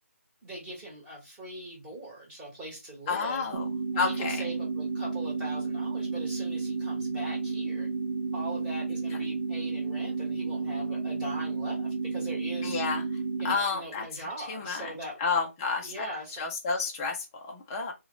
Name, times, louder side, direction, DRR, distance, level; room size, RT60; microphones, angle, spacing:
voice 1, 0.4-3.5 3.9-7.9 8.3-12.8 13.4-15.2 15.8-16.4, right 1 dB, 10° right, 1.0 m, -41 dB
voice 2, 3.1-3.7 4.0-4.4 12.6-13.0 13.4-14.1 14.4-14.9 15.2-16.1 16.4-17.9, left 5 dB, 15° left, 0.3 m, -30 dB
sound 1, 3.5-13.5, right 4 dB, 50° right, 0.6 m, -32 dB
2.8 x 2.0 x 3.6 m
figure-of-eight pair, 155°, 8 cm